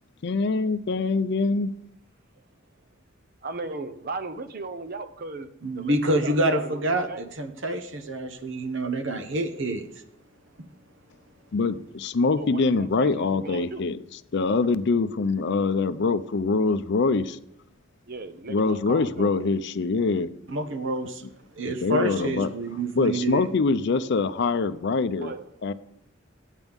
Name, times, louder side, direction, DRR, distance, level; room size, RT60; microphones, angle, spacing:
voice 1, 0.2-1.7 11.5-14.0 14.3-17.4 18.5-20.3 21.7-22.5 22.9-25.3 25.6-25.7, left 4 dB, 60° left, 0.5 m, -24 dB
voice 2, 3.4-5.5 5.7-7.3 12.4-13.9 18.1-19.3 25.2-25.5, right 3 dB, 50° right, 0.8 m, -37 dB
voice 3, 5.6-9.9 20.5-21.1 21.5-23.5, right 1 dB, 65° right, 1.2 m, -27 dB
13.5 x 9.1 x 3.6 m
head